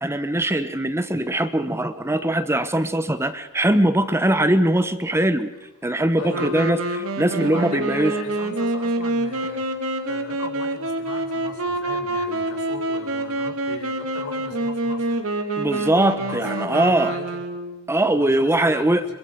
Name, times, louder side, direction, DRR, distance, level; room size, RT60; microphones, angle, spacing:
voice 1, 0.0-5.5 5.8-8.1 15.6-17.1 17.9-19.1, right 1 dB, 10° right, 11 dB, 1.1 m, -21 dB
voice 2, 6.2-6.5 7.4-9.6 10.0-15.2 16.1-17.4 18.1-18.9, left 2 dB, 75° left, 2 dB, 5.0 m, -37 dB
Wind instrument woodwind instrument, 6.2-18.0, right 1 dB, 70° right, 2.3 m, -27 dB
25.5 x 23.0 x 5.3 m, 1.1 s
head